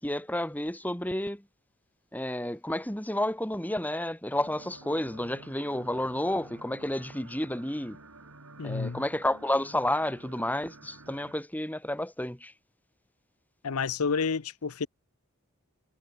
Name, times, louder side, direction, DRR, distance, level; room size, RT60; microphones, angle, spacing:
voice 1, 0.0-1.4 2.1-8.0 8.6-12.5, left 1 dB, 10° left, 2.4 m, -31 dB
sound 1, 4.4-11.4, right 2 dB, 80° right, 5.6 m, -51 dB
voice 2, 8.6-9.0 13.6-14.9, left 5 dB, 80° left, 0.7 m, -29 dB
head